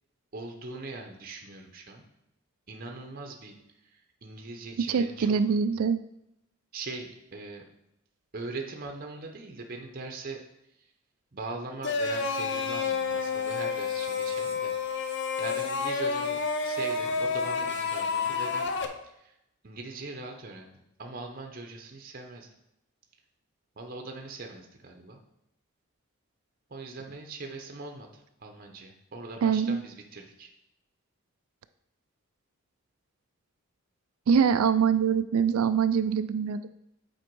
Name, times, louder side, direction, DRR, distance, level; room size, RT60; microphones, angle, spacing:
voice 1, 0.3-2.0 2.7-5.4 6.7-7.6 8.3-10.4 10.8-10.9 11.3-18.7 19.0-19.4 19.6-22.5 23.8-25.2 26.7-30.5, right 3 dB, 40° right, 3 dB, 0.7 m, -41 dB
voice 2, 4.9-6.0 29.4-29.8 34.3-36.7, right 6 dB, 75° right, 12 dB, 0.3 m, -24 dB
sound 1, 11.8-18.9, left 5 dB, 50° left, 0.6 m, -29 dB
7.7 x 4.5 x 4.6 m, 0.83 s
head